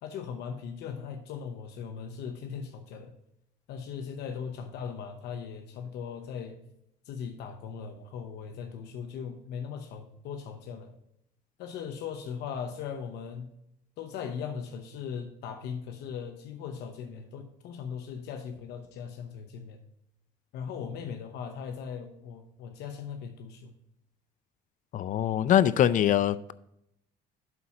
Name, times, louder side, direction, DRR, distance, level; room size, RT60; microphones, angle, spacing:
voice 1, 0.0-3.1 3.7-6.6 7.1-10.9 11.6-13.5 14.0-19.8 20.5-23.7, left 7 dB, 80° left, 0.8 m, -39 dB
voice 2, 24.9-26.5, left 11 dB, 50° left, 0.4 m, -23 dB
11.5 x 4.2 x 4.8 m
cardioid pair, 110°, 17 cm